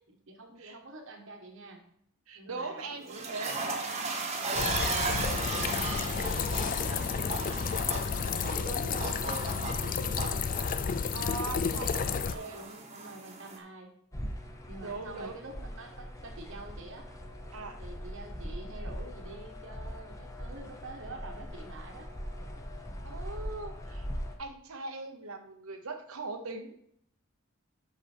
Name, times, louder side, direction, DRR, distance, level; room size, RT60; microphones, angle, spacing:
voice 1, 0.3-1.8 2.3-3.3 4.8-7.7 8.0-10.4 11.7-13.9 14.7-17.1 17.8-22.1, right 2 dB, 60° right, 3 dB, 1.3 m, -46 dB
voice 2, 2.3-3.6 7.8-7.9 11.1-12.0 12.3-12.6 14.8-15.4 17.5-17.8 23.0-24.1 24.4-26.8, right 3 dB, 80° right, 5 dB, 1.0 m, -40 dB
sound 1, 2.8-13.6, right 3 dB, 30° right, 1.2 m, -36 dB
sound 2, 4.6-12.3, left 6 dB, 40° left, 0.4 m, -31 dB
sound 3, 14.1-24.4, equal, 15° left, 0.9 m, -41 dB
8.0 x 6.0 x 4.4 m, 0.69 s
head